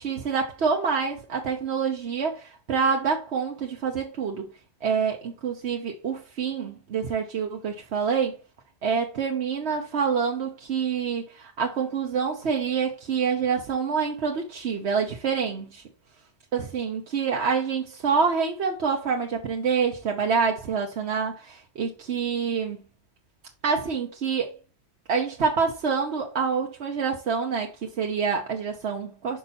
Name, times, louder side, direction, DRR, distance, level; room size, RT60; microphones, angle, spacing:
voice 1, 0.0-4.5 4.8-8.4 8.8-15.8 16.5-22.8 23.6-24.6 25.1-29.4, right 6 dB, 80° right, 1.2 m, -27 dB
5.6 x 5.3 x 4.1 m
omnidirectional pair, 1.1 m